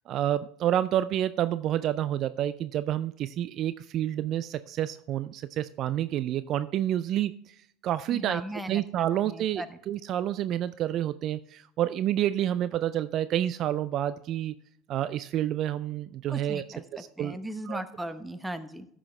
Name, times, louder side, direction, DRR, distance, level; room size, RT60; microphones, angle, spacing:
voice 1, 0.1-7.6 7.8-8.4 8.7-14.5 14.9-16.6 16.9-17.4 17.7-17.8, right 12 dB, 50° right, 14 dB, 0.3 m, -29 dB
voice 2, 8.1-9.8 16.3-18.9, right 1 dB, 10° right, 11 dB, 0.9 m, -38 dB
14.0 x 6.1 x 3.2 m, 0.70 s
hypercardioid pair, 75°, 0 cm